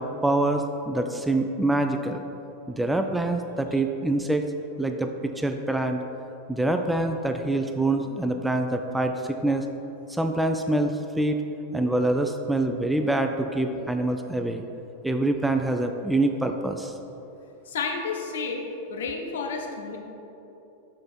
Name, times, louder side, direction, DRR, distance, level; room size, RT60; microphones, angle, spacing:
voice 1, 0.0-2.2 2.7-4.4 4.8-6.0 6.5-9.7 10.1-11.4 11.7-14.6 15.0-16.9, right 2 dB, 5° right, 5 dB, 0.4 m, -25 dB
voice 2, 17.7-18.6 18.9-20.0, left 4 dB, 60° left, 3 dB, 0.9 m, -31 dB
6.5 x 6.4 x 4.3 m, 3.0 s
figure-of-eight pair, 90°, 0 cm